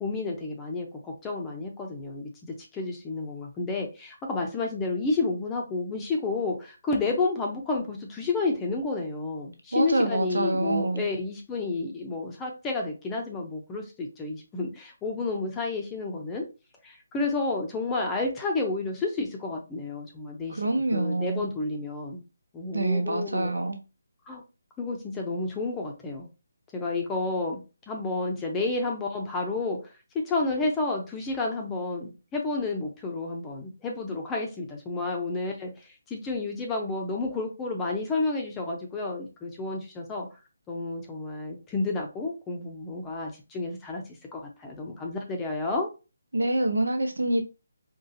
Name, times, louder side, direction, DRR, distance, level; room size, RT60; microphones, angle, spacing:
voice 1, 0.0-16.4 16.8-20.6 20.9-22.2 22.5-23.6 24.3-24.4 24.8-26.3 26.7-27.6 27.9-29.8 30.1-40.3 40.7-44.0 44.3-45.9, left 3 dB, 10° left, 1 dB, 0.6 m, -30 dB
voice 2, 9.7-11.0 20.5-21.4 22.7-23.8 46.3-47.4, right 2 dB, 90° right, 4 dB, 0.9 m, -26 dB
3.8 x 2.4 x 2.7 m, 0.30 s
figure-of-eight pair, 160°, 0 cm